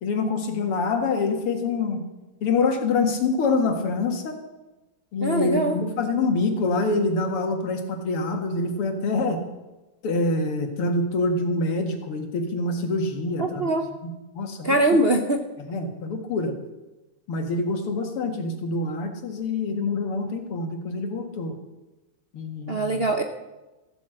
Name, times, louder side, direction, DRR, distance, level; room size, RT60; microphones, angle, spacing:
voice 1, 0.0-2.0 2.4-4.4 5.1-9.4 10.0-13.7 14.0-15.0 15.7-16.5 17.3-21.5 22.3-23.0, left 3 dB, 90° left, 5 dB, 2.6 m, -26 dB
voice 2, 5.2-5.8 13.4-13.9 14.6-15.4 22.7-23.2, right 1 dB, 50° right, 4 dB, 0.7 m, -22 dB
15.0 x 8.7 x 7.7 m, 1.1 s
omnidirectional pair, 2.4 m